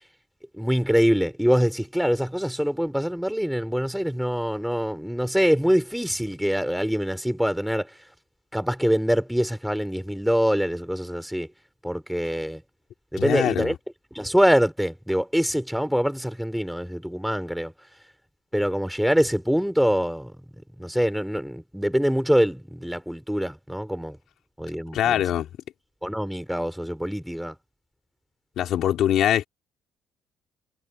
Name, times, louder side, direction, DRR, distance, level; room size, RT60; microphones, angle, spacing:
voice 1, 0.5-8.0 8.5-11.5 11.8-12.6 13.1-13.7 14.1-17.7 18.5-20.3 20.8-24.2 24.6-25.2 26.0-27.5, equal, ahead, 3.3 m, -24 dB
voice 2, 13.2-13.7 24.9-25.5 28.6-29.4, left 11 dB, 70° left, 3.1 m, -23 dB
cardioid pair, 100°, 0 cm